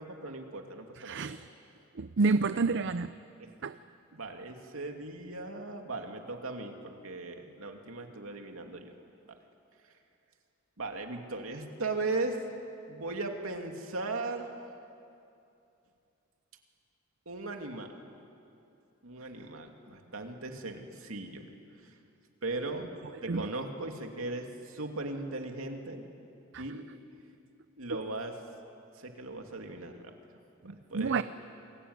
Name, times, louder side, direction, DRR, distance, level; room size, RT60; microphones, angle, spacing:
voice 1, 0.0-1.3 2.5-2.8 3.4-3.5 4.1-8.9 9.3-9.4 10.8-12.4 12.9-14.5 17.3-17.9 19.0-21.5 22.4-22.9 23.2-26.1 26.6-26.9 27.8-28.4 29.0-30.1 30.6-31.2, right 2 dB, 80° right, 4 dB, 2.7 m, -38 dB
voice 2, 1.0-1.5 2.0-3.1 3.6-3.8 23.3-23.5 26.5-26.6 30.7-31.2, right 4 dB, 60° right, 13 dB, 0.6 m, -29 dB
28.5 x 21.5 x 9.7 m, 2.7 s
head